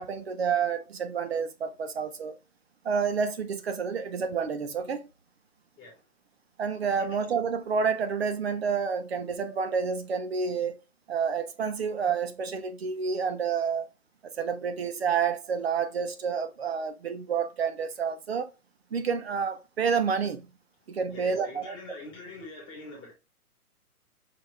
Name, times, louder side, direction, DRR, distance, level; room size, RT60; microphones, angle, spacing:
voice 1, 0.0-2.4 2.8-5.1 6.6-10.8 11.1-13.9 14.4-18.5 18.9-20.4 20.9-21.7, right 6 dB, 45° right, 0.7 m, -29 dB
voice 2, 21.1-23.2, left 3 dB, 10° left, 1.4 m, -44 dB
5.9 x 2.8 x 3.2 m
hypercardioid pair, 165°, 45 cm